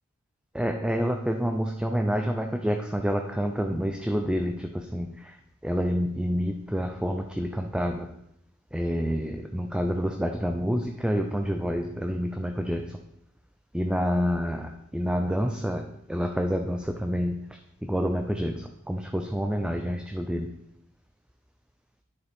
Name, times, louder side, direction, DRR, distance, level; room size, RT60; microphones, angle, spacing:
voice 1, 0.5-8.1 8.7-13.0 13.7-20.5, equal, 5° right, 4 dB, 0.5 m, -28 dB
9.9 x 6.6 x 3.5 m, 0.74 s
head